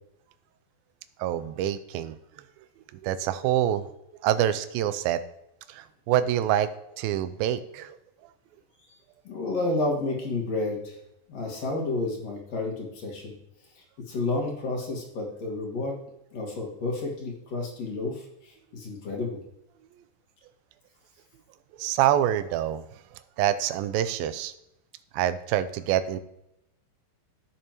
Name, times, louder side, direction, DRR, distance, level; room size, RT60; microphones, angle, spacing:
voice 1, 1.2-2.2 3.0-3.9 4.2-5.2 5.7-6.7 7.0-8.0 21.8-22.8 23.4-24.5 25.1-26.2, right 11 dB, 80° right, 12 dB, 2.3 m, -26 dB
voice 2, 9.2-11.0 11.3-13.3 14.1-16.0 16.3-19.4, left 2 dB, 50° left, 0 dB, 2.7 m, -30 dB
16.0 x 6.7 x 3.0 m, 0.83 s
omnidirectional pair, 4.4 m